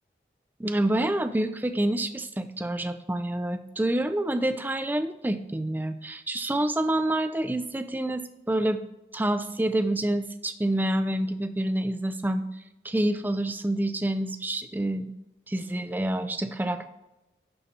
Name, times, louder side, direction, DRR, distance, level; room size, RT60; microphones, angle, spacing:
voice 1, 0.6-8.8 9.1-12.5 12.8-15.1 15.5-16.9, right 1 dB, 10° right, 10 dB, 0.4 m, -27 dB
11.0 x 4.2 x 4.2 m, 0.98 s
head